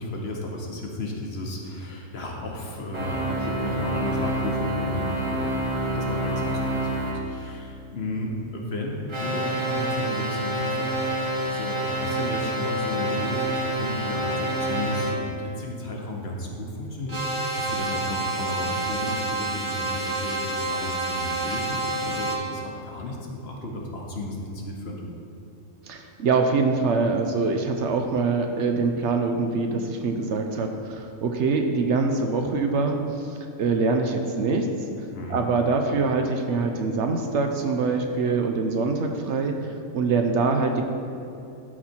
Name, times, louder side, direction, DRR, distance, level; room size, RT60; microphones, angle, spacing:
voice 1, 0.0-23.2 23.4-25.0 35.1-35.5, left 1 dB, 55° left, 0 dB, 1.2 m, -33 dB
sound 1, 2.9-7.2 9.1-15.2 17.1-22.4, right 1 dB, 25° right, 0.8 m, -28 dB
voice 2, 25.8-34.7 35.3-40.8, right 4 dB, 65° right, 4 dB, 0.9 m, -24 dB
12.0 x 4.2 x 4.3 m, 2.6 s
omnidirectional pair, 1.4 m